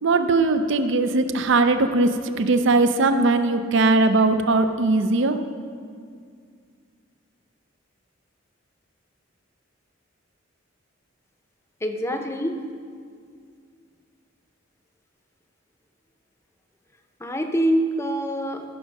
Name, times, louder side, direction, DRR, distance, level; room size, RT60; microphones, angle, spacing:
voice 1, 0.0-5.4, right 3 dB, 65° right, 9 dB, 0.5 m, -20 dB
voice 2, 11.8-12.6 17.2-18.6, equal, 15° left, 5 dB, 0.7 m, -25 dB
15.0 x 6.3 x 5.3 m, 2.1 s
head